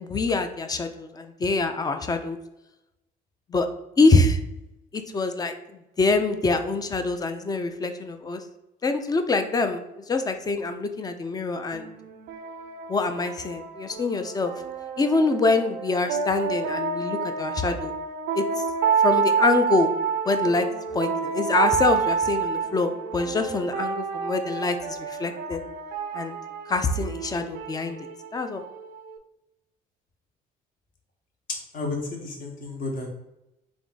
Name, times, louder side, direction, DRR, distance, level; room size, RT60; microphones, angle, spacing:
voice 1, 0.0-2.4 3.5-3.7 4.0-4.4 4.9-5.5 6.0-8.4 8.8-9.8 10.1-11.9 12.9-14.5 15.0-17.9 18.3-18.5 19.0-19.9 20.3-20.7 20.9-25.6 26.1-26.3 26.7-28.0 28.3-28.6, left 3 dB, 25° left, 8 dB, 0.4 m, -25 dB
sound 1, 11.7-29.2, right 6 dB, 85° right, 0.4 m, -29 dB
voice 2, 31.7-33.1, left 3 dB, 55° left, 1 dB, 1.1 m, -32 dB
3.5 x 2.6 x 3.8 m, 0.93 s
cardioid pair, 110°, 17 cm